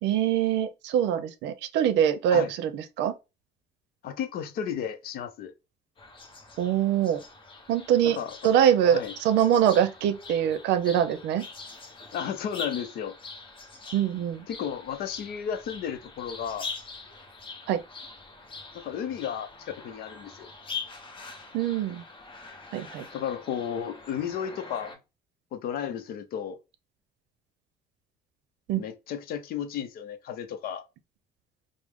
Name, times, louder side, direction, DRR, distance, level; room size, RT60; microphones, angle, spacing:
voice 1, 0.0-3.1 6.6-7.2 7.7-8.2 8.4-9.0 9.2-11.4 13.9-14.5 17.7-17.8 21.5-22.0 22.7-23.1 28.7-28.8, right 10 dB, 70° right, 0.6 m, -23 dB
voice 2, 4.0-5.5 8.0-8.3 8.8-9.1 12.1-13.1 14.5-16.7 18.7-20.5 23.1-25.0 25.5-26.6 28.8-30.8, left 8 dB, 55° left, 0.6 m, -33 dB
sound 1, 6.0-25.0, left 4 dB, 30° left, 0.9 m, -43 dB
5.0 x 2.0 x 3.6 m
cardioid pair, 170°, 18 cm